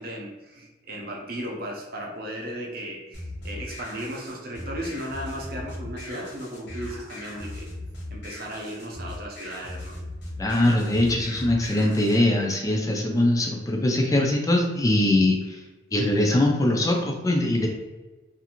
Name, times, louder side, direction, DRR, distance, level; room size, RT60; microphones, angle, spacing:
voice 1, 0.0-7.7 8.1-10.0, right 1 dB, 50° right, 0 dB, 0.6 m, -35 dB
sound 1, 3.1-12.2, left 1 dB, 65° left, 0.9 m, -38 dB
voice 2, 10.4-15.6 15.9-17.7, left 1 dB, 20° left, 0 dB, 0.3 m, -22 dB
2.5 x 2.4 x 2.9 m, 1.2 s
head